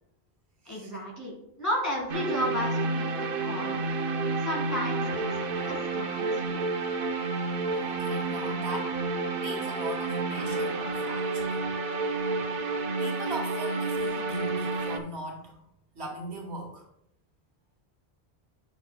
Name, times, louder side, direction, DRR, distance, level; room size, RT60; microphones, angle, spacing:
voice 1, 0.7-3.9 4.4-6.7, left 1 dB, 15° left, -3 dB, 1.8 m, -34 dB
sound 1, 2.1-15.0, right 3 dB, 60° right, 0.9 m, -30 dB
voice 2, 7.8-8.9 9.4-11.6 13.0-15.6 15.9-16.8, right 2 dB, 85° right, 1 dB, 1.7 m, -39 dB
9.4 x 5.9 x 2.2 m, 0.75 s
omnidirectional pair, 1.1 m